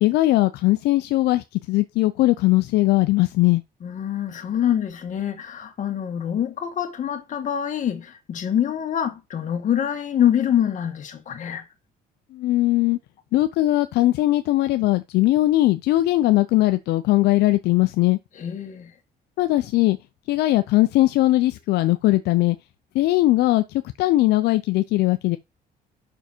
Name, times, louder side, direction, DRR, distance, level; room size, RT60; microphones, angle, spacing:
voice 1, 0.0-3.6 12.3-13.0 13.3-18.2 19.4-20.0 20.3-22.6 22.9-23.6 24.0-25.4, left 17 dB, 75° left, 0.6 m, -19 dB
voice 2, 3.8-11.6 18.4-18.9, left 9 dB, 50° left, 2.1 m, -25 dB
6.8 x 6.2 x 4.4 m
cardioid pair, 110°, 17 cm